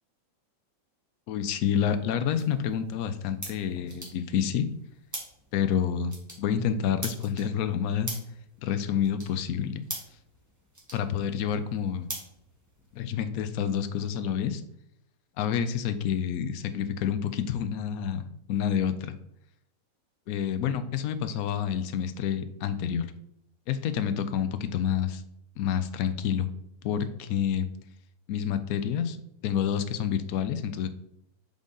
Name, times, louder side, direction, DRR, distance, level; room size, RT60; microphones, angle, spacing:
voice 1, 1.3-4.7 5.5-8.2 8.6-9.8 10.9-12.1 12.9-14.6 15.4-19.1 20.3-23.1 23.7-25.2 25.6-26.5 26.8-27.7 28.3-29.2 29.4-30.9, left 8 dB, 75° left, 11 dB, 0.8 m, -28 dB
sound 1, 1.6-13.1, right 1 dB, 10° right, 1.2 m, -44 dB
7.1 x 3.8 x 3.8 m, 0.76 s
omnidirectional pair, 2.0 m